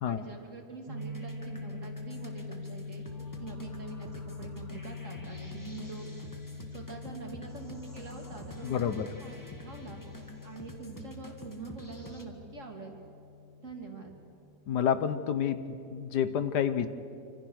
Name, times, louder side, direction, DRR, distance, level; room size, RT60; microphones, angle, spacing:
voice 1, 0.1-6.1 6.7-8.9 9.2-10.0 10.4-13.0 13.6-14.1, right 4 dB, 50° right, 2 dB, 3.1 m, -45 dB
sound 1, 0.9-14.3, left 3 dB, 20° right, 2.3 m, -44 dB
sound 2, 1.0-12.2, equal, 10° left, 1.8 m, -49 dB
voice 2, 8.6-9.1 14.7-16.9, left 8 dB, 85° left, 12 dB, 1.6 m, -29 dB
26.5 x 25.5 x 6.4 m, 2.5 s
omnidirectional pair, 1.7 m